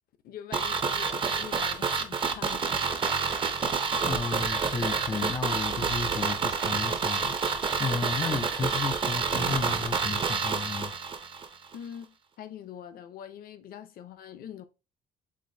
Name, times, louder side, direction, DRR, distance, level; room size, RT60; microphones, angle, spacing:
voice 1, 0.2-2.8 11.7-14.6, left 9 dB, 60° left, 0.6 m, -44 dB
sound 1, 0.5-11.5 11.7-11.8, right 5 dB, 30° right, 0.6 m, -28 dB
voice 2, 4.0-10.9, left 5 dB, 25° left, 0.4 m, -33 dB
sound 2, 4.4-10.5, right 11 dB, 55° right, 0.9 m, -50 dB
5.9 x 2.5 x 2.7 m
cardioid pair, 110°, 17 cm